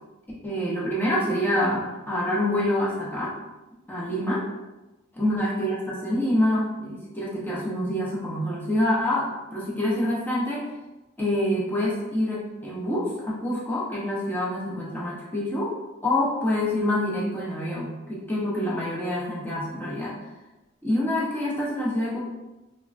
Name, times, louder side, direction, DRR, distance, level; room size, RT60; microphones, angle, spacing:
voice 1, 0.4-3.3 3.9-4.5 5.1-10.7 11.2-15.8 16.0-20.2 20.8-22.2, left 1 dB, 10° left, -6 dB, 0.5 m, -26 dB
3.0 x 2.2 x 2.4 m, 1.0 s
head